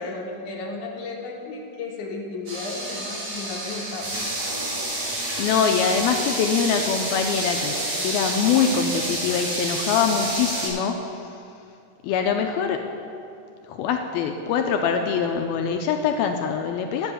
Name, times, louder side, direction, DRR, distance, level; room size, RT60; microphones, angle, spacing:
voice 1, 0.0-4.1, left 3 dB, 65° left, -1 dB, 2.1 m, -34 dB
sound 1, 2.5-10.7, right 1 dB, 45° right, 3.8 m, -29 dB
voice 2, 5.4-11.4 12.0-12.8 13.7-17.1, left 6 dB, 85° left, 4 dB, 2.2 m, -24 dB
10.0 x 7.9 x 8.4 m, 2.5 s
omnidirectional pair, 4.8 m